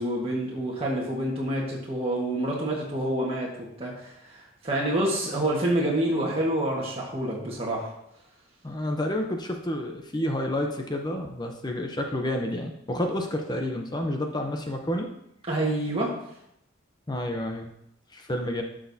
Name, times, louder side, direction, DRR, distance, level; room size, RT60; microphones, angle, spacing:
voice 1, 0.0-3.5 3.8-7.9 15.5-16.1, right 1 dB, 30° right, -5 dB, 1.5 m, -27 dB
voice 2, 8.6-15.1 17.1-17.7 18.1-18.6, left 1 dB, 20° left, 3 dB, 0.7 m, -29 dB
12.0 x 6.3 x 2.8 m, 0.76 s
head